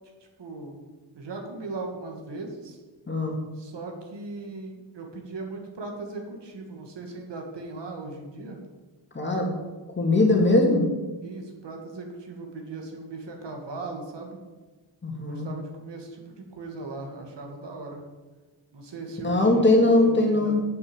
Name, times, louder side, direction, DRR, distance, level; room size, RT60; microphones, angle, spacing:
voice 1, 0.4-0.8 1.1-2.8 3.6-8.6 11.2-14.4 15.1-18.0 18.7-20.6, right 3 dB, 70° right, 2 dB, 2.4 m, -38 dB
voice 2, 9.1-9.5 10.0-10.8 15.0-15.5 19.2-20.6, left 2 dB, 25° left, 1 dB, 2.2 m, -20 dB
9.5 x 8.1 x 7.3 m, 1.2 s
wide cardioid pair, 165°, 45 cm